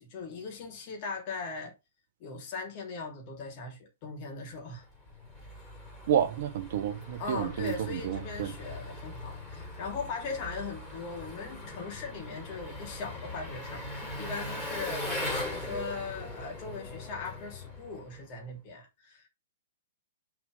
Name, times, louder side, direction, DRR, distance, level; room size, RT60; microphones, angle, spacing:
voice 1, 0.0-1.7 2.2-4.9 7.2-15.0 15.4-19.3, left 4 dB, 35° left, 2.9 m, -39 dB
Engine, 4.8-18.4, left 1 dB, 10° left, 4.7 m, -40 dB
voice 2, 6.1-8.5, right 9 dB, 50° right, 0.9 m, -30 dB
6.0 x 5.1 x 5.2 m
figure-of-eight pair, 110°, 0 cm